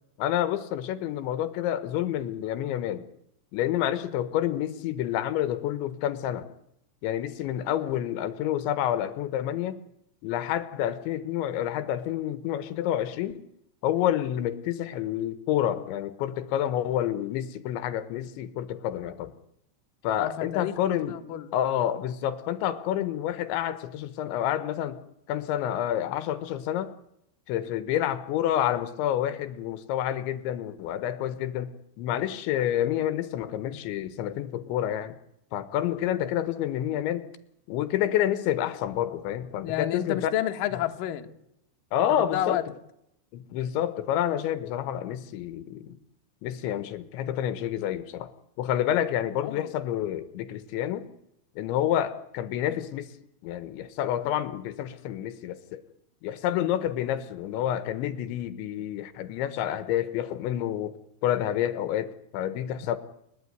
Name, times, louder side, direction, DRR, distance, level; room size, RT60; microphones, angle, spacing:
voice 1, 0.2-3.0 3.5-6.4 7.0-9.8 10.2-13.5 13.8-19.3 20.0-21.2 21.5-25.0 25.3-26.9 27.5-31.7 32.0-35.2 35.5-37.3 37.7-40.3 41.9-42.6 43.3-46.0 46.4-48.3 48.6-51.1 51.6-53.1 53.4-55.8 56.2-61.0 61.2-63.0, left 11 dB, 80° left, 3.3 m, -28 dB
voice 2, 20.2-21.5 39.6-41.3 42.1-42.6 49.4-49.7 56.5-56.7, left 12 dB, 65° left, 2.5 m, -30 dB
29.5 x 12.0 x 9.4 m
omnidirectional pair, 5.4 m